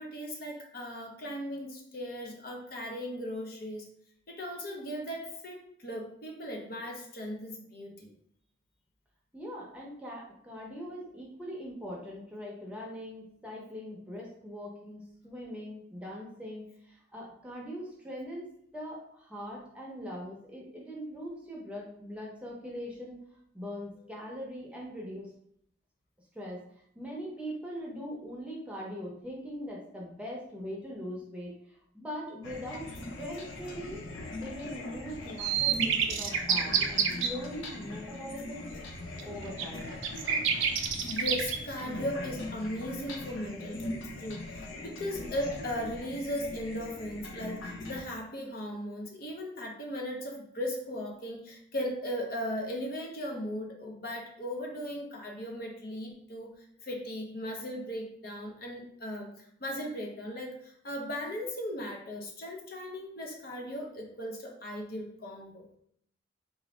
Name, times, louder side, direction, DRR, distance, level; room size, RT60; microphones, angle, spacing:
voice 1, 0.0-3.8 4.3-8.1 41.0-56.5 56.8-59.3 59.6-65.6, equal, 50° left, 0 dB, 0.7 m, -37 dB
voice 2, 9.3-18.5 18.7-23.2 23.5-25.3 26.3-26.6 26.9-31.6 31.9-34.0 34.4-38.8 39.2-40.0, equal, 5° right, -3 dB, 0.7 m, -41 dB
sound 1, 32.4-48.0, left 2 dB, 85° left, 0.6 m, -41 dB
sound 2, 35.4-37.3 39.2-39.3 39.6-41.6, right 7 dB, 80° right, 0.4 m, -28 dB
4.0 x 2.5 x 3.1 m, 0.68 s
head